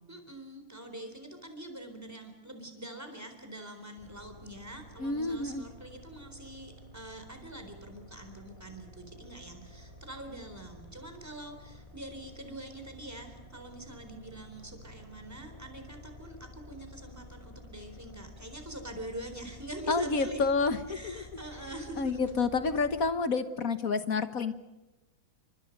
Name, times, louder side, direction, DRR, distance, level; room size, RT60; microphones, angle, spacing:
voice 1, 0.1-20.5 20.9-22.4, right 1 dB, 10° right, 6 dB, 3.8 m, -44 dB
sound 1, 4.0-23.1, left 1 dB, 20° left, 6.5 m, -51 dB
voice 2, 5.0-5.6 19.9-21.4 22.0-24.5, left 4 dB, 50° left, 11 dB, 1.5 m, -29 dB
30.0 x 25.5 x 5.3 m, 1.0 s
omnidirectional pair, 2.1 m